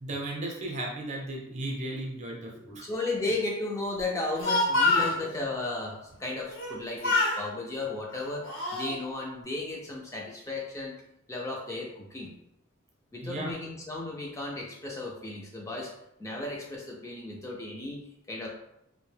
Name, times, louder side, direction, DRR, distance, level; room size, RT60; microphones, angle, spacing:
voice 1, 0.0-2.8 13.2-13.5, right 1 dB, 35° right, -1 dB, 0.6 m, -35 dB
voice 2, 2.5-8.5 8.7-10.9 11.3-12.3 13.1-15.9 16.2-18.0 18.3-18.5, left 2 dB, 15° left, -2 dB, 0.3 m, -34 dB
Speech, 4.1-5.2 6.5-6.8 7.0-7.4 8.1-8.9, left 2 dB, 65° left, 0.7 m, -26 dB
2.5 x 2.1 x 3.2 m, 0.81 s
head